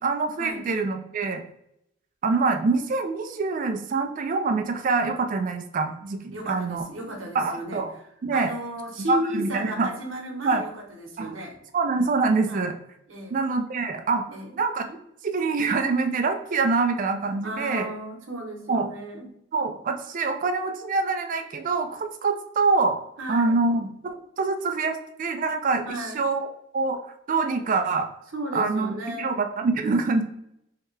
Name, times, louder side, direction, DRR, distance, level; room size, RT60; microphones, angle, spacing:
voice 1, 0.0-1.4 2.2-6.8 7.3-7.9 8.2-8.5 9.1-9.9 10.4-10.6 11.2-11.3 11.7-12.7 13.3-14.3 14.5-15.0 15.2-17.9 18.7-18.9 19.5-23.0 23.3-26.4 26.7-27.0 27.3-28.1 28.5-30.2, right 4 dB, 40° right, 6 dB, 0.3 m, -25 dB
voice 2, 6.3-7.8 8.3-11.6 12.5-12.7 13.1-13.4 14.3-14.6 17.4-19.3 23.2-23.6 25.8-26.3 28.3-29.3, right 1 dB, 85° right, 2 dB, 0.9 m, -34 dB
3.3 x 2.8 x 3.2 m, 0.77 s
head